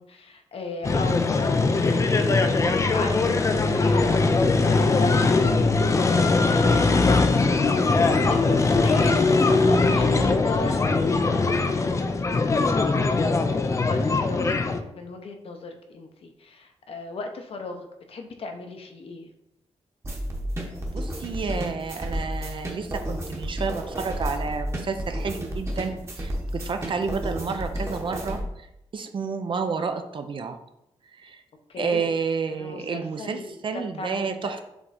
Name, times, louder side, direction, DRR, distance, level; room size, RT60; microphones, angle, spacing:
voice 1, 0.0-11.9 12.9-14.6 14.9-19.3 31.7-32.1 32.6-34.4, left 3 dB, 60° left, 5 dB, 0.9 m, -36 dB
sound 1, 0.8-14.8, left 3 dB, 30° left, 0.4 m, -21 dB
sound 2, 6.0-10.6, right 2 dB, 85° right, 1.2 m, -41 dB
sound 3, 20.0-28.4, equal, 25° right, 1.1 m, -32 dB
voice 2, 20.8-28.7 28.9-30.6 31.2-31.4 31.8-34.6, right 5 dB, 50° right, 7 dB, 0.6 m, -30 dB
7.0 x 3.7 x 4.2 m, 0.84 s
wide cardioid pair, 170°, 11 cm